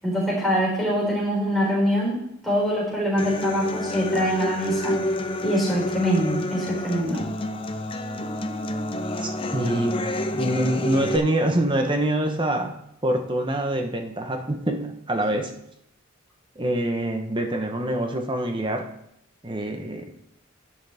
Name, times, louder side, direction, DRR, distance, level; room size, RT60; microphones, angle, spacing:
voice 1, 0.0-5.0 5.4-7.2, equal, ahead, -5 dB, 4.1 m, -24 dB
Human voice / Acoustic guitar, 3.2-11.2, left 1 dB, 25° left, 0.6 m, -28 dB
voice 2, 9.2-10.0 10.3-15.5 16.6-18.9 19.4-20.1, right 1 dB, 25° right, 5 dB, 1.0 m, -25 dB
10.5 x 10.5 x 3.5 m, 0.78 s
head